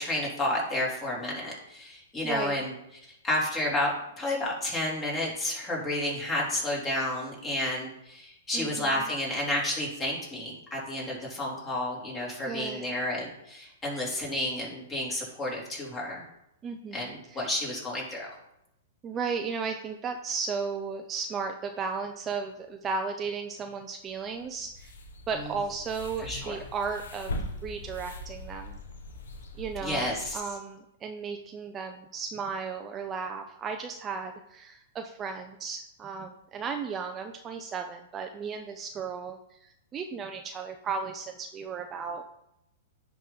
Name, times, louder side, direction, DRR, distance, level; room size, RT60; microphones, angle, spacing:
voice 1, 0.0-2.7 3.1-16.2 16.9-18.3 25.4-25.5 26.2-26.6 29.8-30.4, left 1 dB, 20° left, -3 dB, 2.9 m, -31 dB
voice 2, 2.2-2.7 8.5-8.9 12.4-12.9 16.6-17.4 19.0-24.9 25.3-27.3 27.6-28.8 29.6-42.2, right 5 dB, 25° right, 5 dB, 0.5 m, -35 dB
sound 1, 24.2-30.4, left 1 dB, 80° left, 1.1 m, -41 dB
10.5 x 3.8 x 4.0 m, 0.84 s
hypercardioid pair, 125°, 0 cm